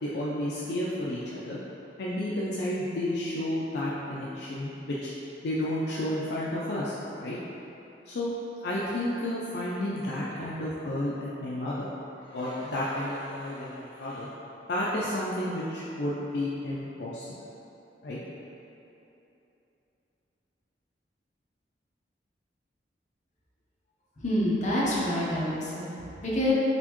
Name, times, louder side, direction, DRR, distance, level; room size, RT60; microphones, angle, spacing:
voice 1, 0.0-1.6 2.0-5.1 5.4-6.9 7.2-7.4 8.1-8.3 8.6-11.9 12.3-14.3 14.7-17.4 18.0-18.2, left 1 dB, 65° left, -7 dB, 0.4 m, -31 dB
voice 2, 24.2-25.9 26.2-26.5, left 1 dB, 40° left, -7 dB, 0.9 m, -27 dB
4.1 x 3.5 x 3.0 m, 3.0 s
head